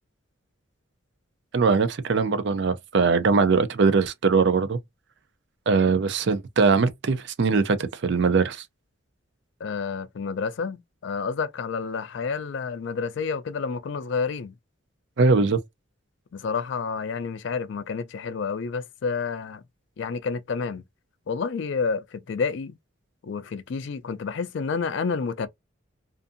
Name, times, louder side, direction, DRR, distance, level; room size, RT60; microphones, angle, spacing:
voice 1, 1.5-4.8 5.7-8.6 15.2-15.6, right 4 dB, 60° right, 0.4 m, -21 dB
voice 2, 9.6-14.5 16.3-19.6 20.0-20.8 21.3-22.7 23.2-25.5, left 5 dB, 60° left, 0.4 m, -29 dB
2.6 x 2.5 x 2.5 m
head